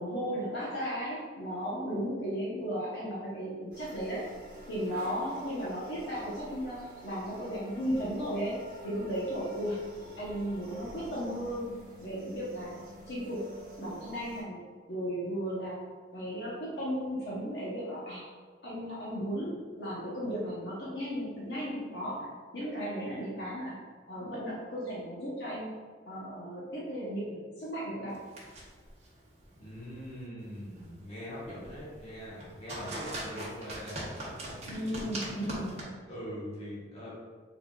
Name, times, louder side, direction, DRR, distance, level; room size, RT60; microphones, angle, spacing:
voice 1, 0.0-4.3 4.7-9.8 10.2-11.7 12.0-13.4 13.8-14.6 14.9-15.8 16.1-18.2 18.6-22.3 22.5-23.8 24.1-25.8 26.1-28.2 34.7-36.0, equal, 70° left, -7 dB, 0.9 m, -35 dB
sound 1, 3.7-14.4, equal, 55° right, 1.2 m, -49 dB
sound 2, 28.1-35.8, right 1 dB, 40° right, 1.0 m, -43 dB
voice 2, 29.6-34.6 35.4-35.8 36.1-37.2, equal, 35° left, -8 dB, 1.2 m, -42 dB
3.8 x 3.8 x 2.3 m, 1.5 s
head